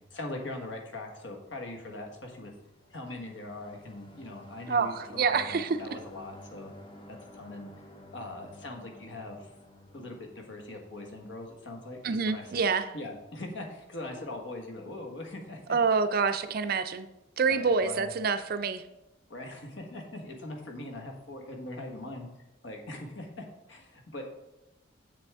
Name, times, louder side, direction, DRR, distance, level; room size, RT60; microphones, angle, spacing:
voice 1, 0.1-2.5 2.9-6.7 7.1-7.7 8.1-9.5 9.9-12.0 12.3-12.6 12.9-15.8 17.5-18.1 19.3-22.3 22.6-24.2, left 2 dB, 65° left, 2 dB, 1.4 m, -41 dB
sound 1, 2.5-11.2, left 1 dB, 25° left, 0.8 m, -52 dB
voice 2, 4.7-5.8 12.0-12.9 15.7-17.1 17.4-18.8, right 5 dB, 50° right, 11 dB, 0.4 m, -27 dB
7.0 x 6.7 x 3.5 m, 0.95 s
head